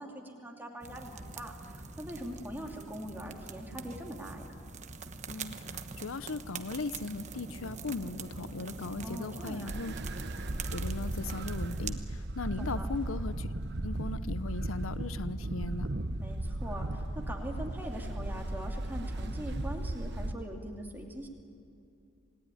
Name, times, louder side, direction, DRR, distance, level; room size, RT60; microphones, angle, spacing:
voice 1, 0.0-4.5 9.0-9.7 12.6-12.9 16.2-21.3, equal, 10° right, 1 dB, 2.7 m, -42 dB
sound 1, 0.8-11.9, right 4 dB, 35° right, 1.1 m, -43 dB
voice 2, 5.3-9.9 10.7-13.5 13.8-15.9, left 3 dB, 85° left, 14 dB, 0.7 m, -38 dB
sound 2, 9.7-20.3, right 1 dB, 55° right, 1.1 m, -36 dB
27.5 x 19.0 x 9.9 m, 2.5 s
head